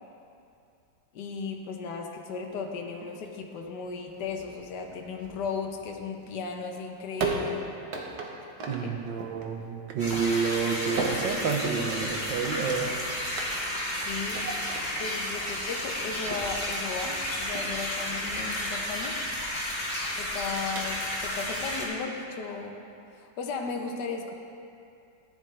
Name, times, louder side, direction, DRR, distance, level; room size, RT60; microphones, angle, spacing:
voice 1, 1.1-7.6 8.8-9.0 13.9-14.5 15.0-19.2 20.2-22.7 23.1-24.3, left 5 dB, 70° left, 2 dB, 1.5 m, -36 dB
sound 1, 2.5-21.3, right 3 dB, 60° right, 1.6 m, -39 dB
voice 2, 8.7-12.9, right 5 dB, 90° right, 3 dB, 1.7 m, -29 dB
sound 2, 10.0-21.8, left 1 dB, 30° left, 2.6 m, -32 dB
14.5 x 11.0 x 3.3 m, 2.5 s
omnidirectional pair, 1.9 m